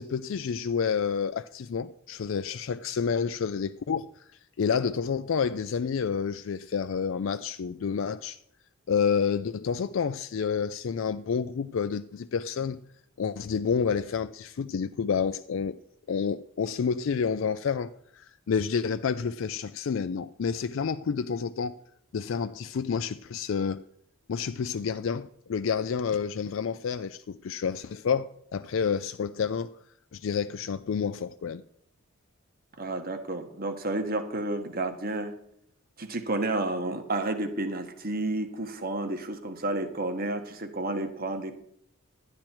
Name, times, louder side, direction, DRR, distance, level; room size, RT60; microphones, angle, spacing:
voice 1, 0.0-4.3 4.6-8.4 8.9-12.8 13.2-15.8 16.1-21.8 22.1-23.8 24.3-29.7 30.1-31.6, left 6 dB, 65° left, 0.4 m, -29 dB
voice 2, 32.8-35.3 36.0-41.5, right 2 dB, 45° right, 1.3 m, -31 dB
12.0 x 9.9 x 4.5 m
head